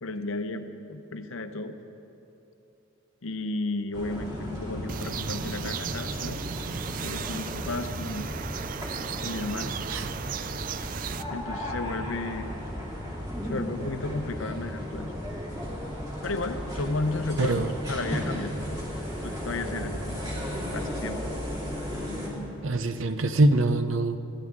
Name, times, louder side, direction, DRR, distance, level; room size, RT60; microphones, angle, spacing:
voice 1, 0.0-1.8 3.2-6.4 7.0-8.3 9.0-9.8 11.3-12.5 13.4-15.1 16.2-18.8 19.2-19.9 20.7-21.2, left 2 dB, 75° left, 8 dB, 0.7 m, -33 dB
sound 1, 3.9-22.3, equal, 15° right, 2.6 m, -35 dB
sound 2, 4.9-11.2, right 7 dB, 40° right, 0.3 m, -35 dB
voice 2, 17.4-17.7 22.6-24.2, right 2 dB, 70° right, 10 dB, 0.7 m, -23 dB
20.5 x 14.0 x 3.7 m, 2.9 s
head